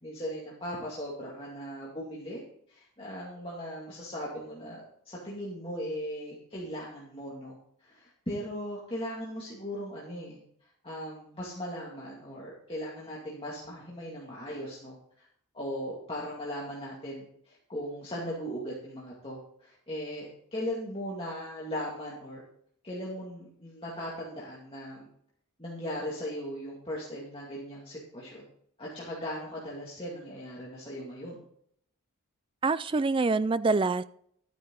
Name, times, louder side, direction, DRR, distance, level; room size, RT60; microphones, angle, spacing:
voice 1, 0.0-2.4 2.7-7.5 7.8-10.4 10.8-15.3 15.5-22.4 22.8-25.1 25.6-28.5 28.8-31.4, equal, 25° left, -5 dB, 2.3 m, -38 dB
voice 2, 32.6-34.0, right 3 dB, 25° right, 16 dB, 0.3 m, -25 dB
13.5 x 9.3 x 3.9 m, 0.67 s
head